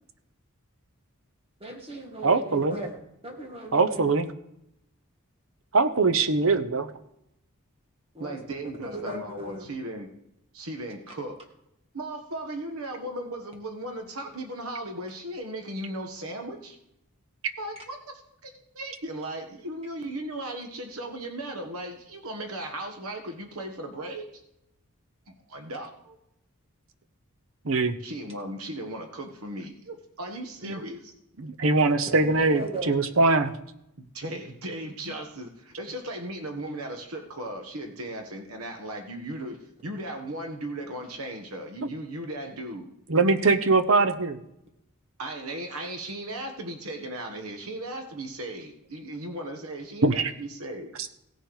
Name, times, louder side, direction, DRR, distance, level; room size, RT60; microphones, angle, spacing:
voice 1, 1.6-4.1 8.1-8.4 8.8-9.7 17.8-17.9 32.2-32.9, right 2 dB, 25° right, 2 dB, 2.0 m, -38 dB
voice 2, 2.2-2.8 3.7-4.3 5.7-6.9 27.6-27.9 30.6-30.8 31.4-33.5 43.1-44.4 50.0-50.3, right 3 dB, 65° right, 10 dB, 0.9 m, -22 dB
voice 3, 8.2-10.1 10.5-11.4 11.9-16.8 17.6-18.0 18.4-24.3 25.3-26.2 28.0-31.1 34.1-42.9 45.2-50.9, right 1 dB, 80° right, 4 dB, 1.5 m, -37 dB
16.5 x 6.4 x 4.9 m, 0.82 s
head